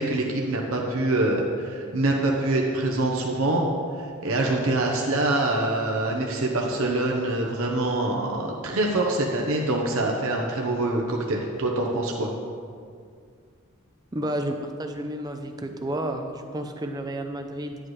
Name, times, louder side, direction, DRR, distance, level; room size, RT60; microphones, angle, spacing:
voice 1, 0.0-3.7 4.0-12.3, right 2 dB, 65° right, -1 dB, 0.9 m, -25 dB
voice 2, 14.1-17.8, right 1 dB, 15° right, 5 dB, 0.5 m, -31 dB
10.5 x 8.5 x 3.2 m, 2.1 s
head